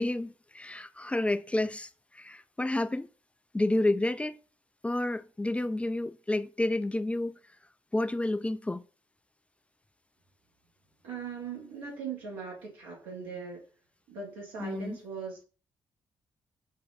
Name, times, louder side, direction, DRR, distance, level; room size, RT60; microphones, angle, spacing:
voice 1, 0.0-3.1 3.5-4.4 4.8-7.4 7.9-8.8 14.6-15.0, left 2 dB, 15° left, 0.3 m, -30 dB
voice 2, 11.0-13.6 14.1-15.5, right 5 dB, 85° right, 1.5 m, -40 dB
4.5 x 2.5 x 3.9 m
hypercardioid pair, 45°, 9 cm